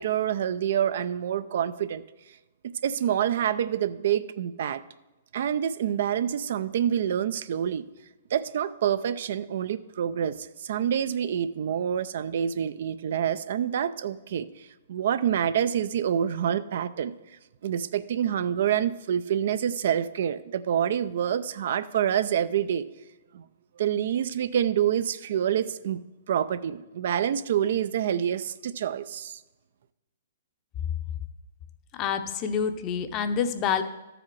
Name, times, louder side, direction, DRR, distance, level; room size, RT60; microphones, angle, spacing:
voice 1, 0.0-2.0 2.8-4.8 5.3-7.8 8.3-17.1 17.6-22.9 23.3-23.4 23.8-26.0 26.3-29.4, right 9 dB, 65° right, 14 dB, 0.4 m, -27 dB
voice 2, 32.0-33.8, left 7 dB, 30° left, 9 dB, 0.6 m, -27 dB
13.0 x 4.9 x 4.6 m, 1.1 s
hypercardioid pair, 140°, 0 cm